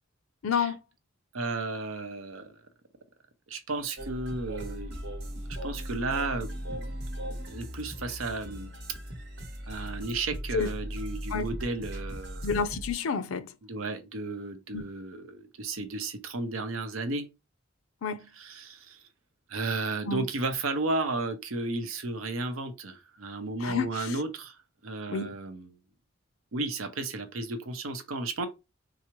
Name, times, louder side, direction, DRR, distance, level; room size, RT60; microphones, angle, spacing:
voice 1, 0.4-0.8 10.5-10.7 11.3-11.5 12.4-13.5 14.7-14.8 18.0-18.3 20.1-20.2 23.6-24.1 25.1-25.3, left 5 dB, 90° left, 0.5 m, -29 dB
voice 2, 1.3-2.5 3.5-4.9 5.6-6.9 7.5-8.7 9.7-12.4 13.6-17.3 18.3-19.0 19.5-25.7 26.5-28.5, right 3 dB, 90° right, 0.7 m, -33 dB
sound 1, 4.0-12.9, equal, 55° right, 1.0 m, -38 dB
4.6 x 2.0 x 3.0 m
head